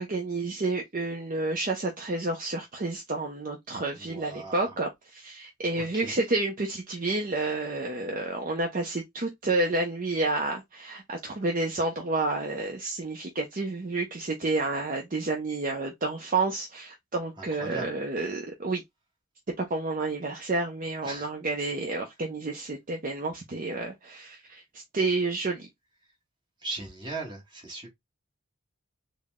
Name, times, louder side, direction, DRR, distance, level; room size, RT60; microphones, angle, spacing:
voice 1, 0.0-18.8 19.6-25.7, right 2 dB, 40° right, 0.6 m, -30 dB
voice 2, 4.0-4.7 6.0-6.1 17.4-17.9 21.0-21.3 26.6-27.9, right 2 dB, 20° right, 1.4 m, -38 dB
3.9 x 2.1 x 3.4 m
head